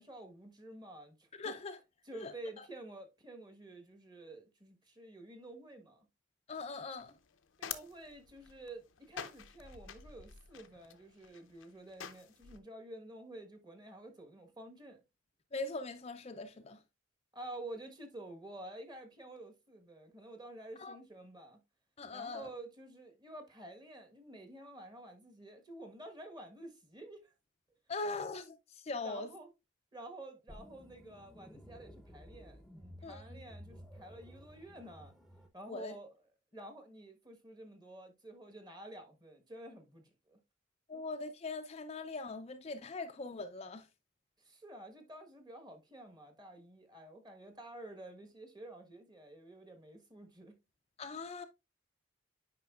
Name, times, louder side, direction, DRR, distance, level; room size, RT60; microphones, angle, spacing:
voice 1, 0.0-1.5 2.0-6.1 7.6-15.0 17.3-21.6 22.1-27.3 29.0-29.5 29.9-35.1 35.5-36.1 36.5-40.4 40.9-41.0 44.4-50.5, right 1 dB, 20° right, 1.3 m, -50 dB
voice 2, 1.4-1.8 2.1-2.7 6.5-7.2 15.5-16.8 20.8-21.0 22.0-22.5 27.9-29.3 33.0-33.4 35.7-35.9 40.9-43.9 51.0-51.4, left 3 dB, 30° left, 0.5 m, -41 dB
sound 1, 7.0-12.6, left 8 dB, 85° left, 0.7 m, -48 dB
sound 2, 30.5-35.5, equal, ahead, 0.8 m, -54 dB
9.3 x 5.1 x 2.4 m
head